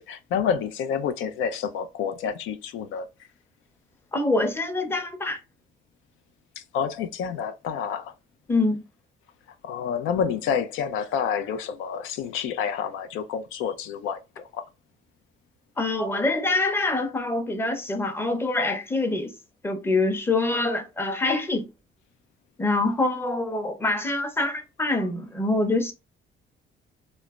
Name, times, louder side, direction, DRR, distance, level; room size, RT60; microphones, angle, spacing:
voice 1, 0.0-3.1 6.6-8.1 9.6-14.6, left 7 dB, 85° left, 0.4 m, -29 dB
voice 2, 4.1-5.4 8.5-8.8 15.8-19.3 19.6-21.7 22.6-25.9, left 2 dB, 10° left, 0.6 m, -25 dB
3.0 x 2.0 x 2.3 m
cardioid pair, 90°, 20 cm